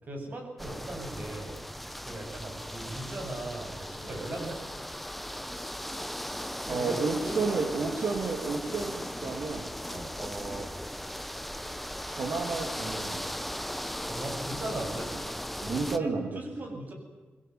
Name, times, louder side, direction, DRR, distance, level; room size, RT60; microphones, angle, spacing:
voice 1, 0.0-1.6 2.0-4.8 6.6-7.5 9.9-10.1 14.0-15.1 15.9-16.1 16.3-16.9, right 1 dB, 40° right, 3 dB, 7.7 m, -38 dB
sound 1, 0.6-16.0, equal, ahead, 0.9 m, -37 dB
voice 2, 6.7-9.7 10.2-10.7 12.1-13.2 15.6-16.4, right 4 dB, 65° right, 3 dB, 3.0 m, -31 dB
26.0 x 21.0 x 9.5 m, 1.3 s
wide cardioid pair, 155°, 4 cm